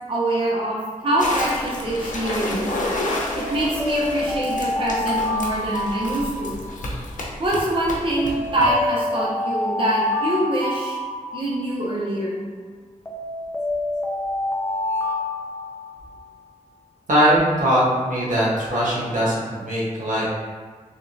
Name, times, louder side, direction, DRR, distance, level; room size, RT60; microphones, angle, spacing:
voice 1, 0.1-2.8 3.4-6.6 7.4-11.0 11.3-12.4, right 1 dB, 40° right, -5 dB, 0.7 m, -24 dB
sound 1, 1.2-8.9, left 1 dB, 75° left, 0.7 m, -30 dB
Alarm, 1.2-1.6 3.3-7.1 8.2-11.9 13.0-16.3, left 2 dB, 15° left, 0.5 m, -27 dB
voice 2, 17.1-20.3, equal, 85° right, -7 dB, 1.1 m, -20 dB
3.5 x 2.9 x 2.6 m, 1.5 s
wide cardioid pair, 80°, 13 cm